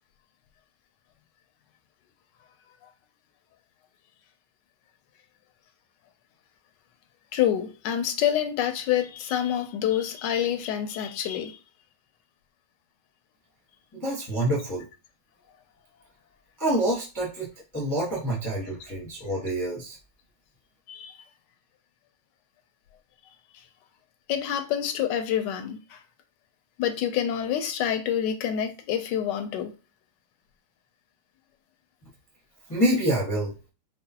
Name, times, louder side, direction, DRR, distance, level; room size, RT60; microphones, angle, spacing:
voice 1, 7.3-11.6 20.9-21.1 24.3-26.0 26.8-29.7, left 10 dB, 75° left, 1.0 m, -27 dB
voice 2, 13.9-14.8 16.6-20.0 32.7-33.5, right 1 dB, 15° left, 0.6 m, -27 dB
4.8 x 2.0 x 2.8 m
omnidirectional pair, 2.3 m